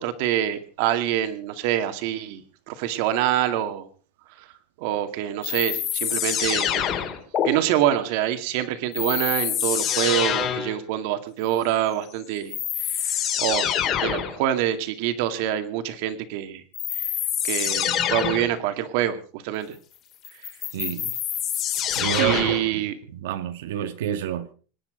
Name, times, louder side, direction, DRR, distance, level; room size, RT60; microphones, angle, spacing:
voice 1, 0.0-3.9 4.4-4.5 4.8-7.0 7.4-13.7 14.0-16.6 17.0-17.1 17.4-19.8 22.2-23.0, right 11 dB, 50° right, 2.2 m, -26 dB
sound 1, 5.4-7.5 8.9-10.8 12.0-12.1 12.5-14.4 16.7-18.5 20.2-22.7, left 9 dB, 25° left, 3.0 m, -26 dB
voice 2, 20.7-21.2 22.0-22.8 23.2-24.5, right 10 dB, 80° right, 1.7 m, -28 dB
26.0 x 10.5 x 5.1 m
supercardioid pair, 180°, 0 cm